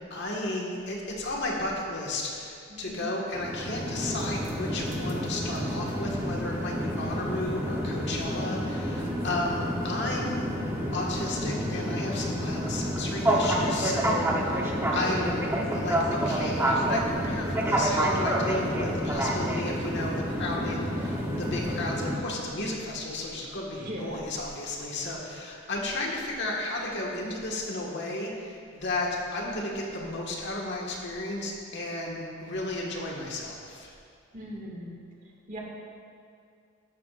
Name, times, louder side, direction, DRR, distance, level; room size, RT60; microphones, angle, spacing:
voice 1, 0.1-10.4 10.9-15.5 15.7-34.0, left 2 dB, 55° left, -2 dB, 1.6 m, -33 dB
voice 2, 2.7-3.1 18.4-19.1 23.7-24.2 34.3-35.0 35.5-35.6, equal, 40° right, -3 dB, 2.0 m, -40 dB
sound 1, 3.3-22.2, equal, 10° right, 0.9 m, -29 dB
14.0 x 11.0 x 2.5 m, 2.3 s
head